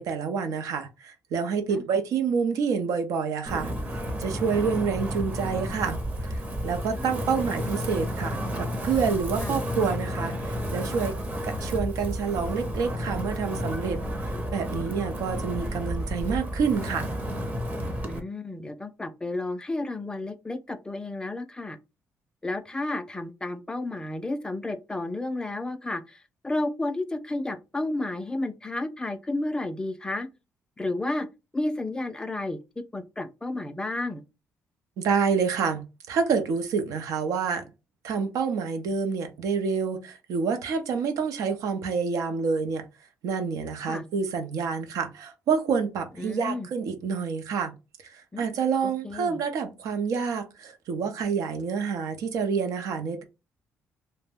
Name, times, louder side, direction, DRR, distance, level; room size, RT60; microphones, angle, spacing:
voice 1, 0.0-3.7 4.2-6.0 6.3-11.2 11.4-14.0 14.5-17.1 35.0-37.7 38.0-42.9 43.2-47.7 48.1-53.2, right 5 dB, 85° right, 0.6 m, -28 dB
Wind, 3.5-18.2, equal, 25° right, 0.6 m, -31 dB
voice 2, 14.3-14.6 18.1-21.8 22.4-30.3 30.8-31.3 31.5-32.6 32.9-34.2 43.9-44.0 46.2-46.7 48.3-48.5 48.8-49.4, left 2 dB, 15° left, 0.3 m, -32 dB
2.6 x 2.1 x 3.4 m
cardioid pair, 115°, 6 cm